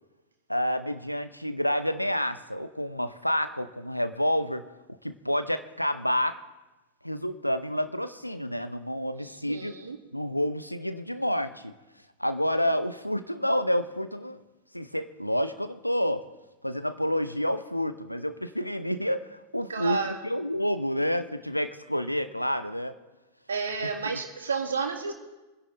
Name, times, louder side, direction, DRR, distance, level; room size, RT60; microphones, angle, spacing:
voice 1, 0.5-4.7 5.0-6.4 7.0-9.7 10.1-11.7 12.2-14.4 14.7-16.2 16.6-22.9 24.0-24.2, equal, 90° left, 11 dB, 0.7 m, -29 dB
voice 2, 9.2-10.0 19.7-20.2 23.5-25.1, right 5 dB, 70° right, 3 dB, 1.9 m, -31 dB
26.0 x 10.5 x 3.3 m, 1.1 s
figure-of-eight pair, 90°, 0 cm